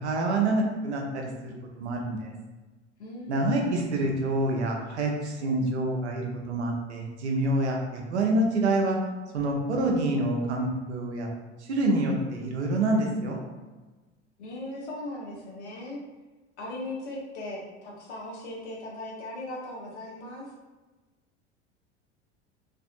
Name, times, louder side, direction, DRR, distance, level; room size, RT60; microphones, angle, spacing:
voice 1, 0.0-2.3 3.3-9.0 9.3-11.3 11.7-13.4, right 2 dB, 70° right, 0 dB, 0.6 m, -27 dB
voice 2, 3.0-3.6 14.4-16.0 16.6-20.5, left 1 dB, 70° left, -3 dB, 0.8 m, -38 dB
2.6 x 2.5 x 2.4 m, 1.2 s
figure-of-eight pair, 75°, 35 cm